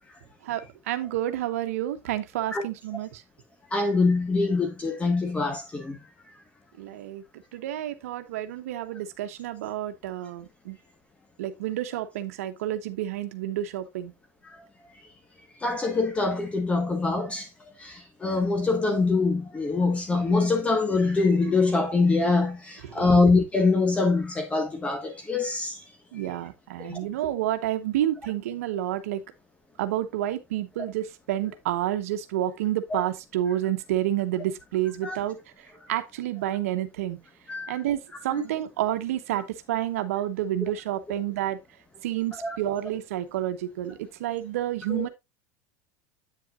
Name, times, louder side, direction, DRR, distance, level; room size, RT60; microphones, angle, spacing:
voice 1, 0.4-3.2 6.8-7.2 7.5-10.8 11.4-14.1 22.8-23.0 26.1-29.2 29.8-37.2 37.7-41.6 42.0-45.1, right 12 dB, 85° right, 1.0 m, -29 dB
voice 2, 3.7-6.0 15.6-17.5 17.8-25.8 26.8-27.0 32.9-33.0 35.0-35.2 37.5-37.8 38.3-38.4 42.4-42.6 44.9-45.1, left 3 dB, 15° left, 1.4 m, -24 dB
8.5 x 7.7 x 2.5 m
supercardioid pair, 120°, 8 cm